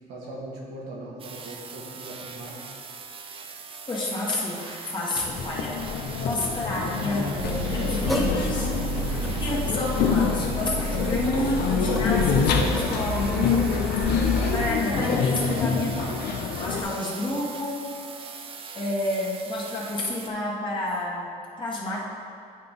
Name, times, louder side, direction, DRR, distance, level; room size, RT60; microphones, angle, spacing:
voice 1, 0.1-2.7, right 1 dB, 80° right, -4 dB, 1.7 m, -39 dB
sound 1, 1.2-20.3, right 5 dB, 35° right, 0.5 m, -41 dB
voice 2, 3.9-5.8 6.2-14.0 14.5-17.9 18.7-22.0, left 1 dB, 30° left, -5 dB, 1.6 m, -30 dB
sound 2, 5.2-16.8, left 6 dB, 70° left, 0.6 m, -26 dB
Car, 7.4-14.7, equal, ahead, 0.7 m, -30 dB
9.6 x 3.9 x 3.7 m, 2.4 s
cardioid pair, 110°, 17 cm